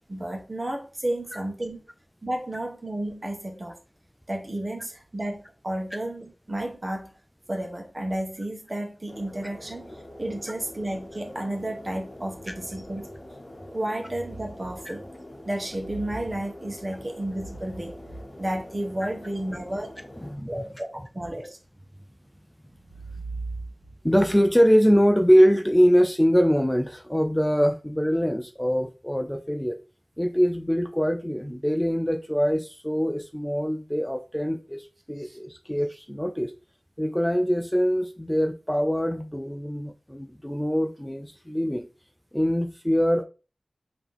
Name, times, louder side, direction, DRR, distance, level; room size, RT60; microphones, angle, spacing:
voice 1, 0.0-1.8 2.2-3.8 4.3-7.1 7.5-9.9 10.2-13.0 13.7-15.1 15.4-18.0 18.4-19.9 20.5-21.6 35.2-35.4, right 1 dB, 40° right, 1.1 m, -32 dB
sound 1, 9.1-20.3, left 1 dB, 50° left, 1.0 m, -44 dB
voice 2, 24.0-29.8 30.2-36.5 37.0-41.9 42.3-43.2, equal, 10° left, 0.4 m, -23 dB
3.7 x 2.9 x 3.5 m
wide cardioid pair, 40°, 0 cm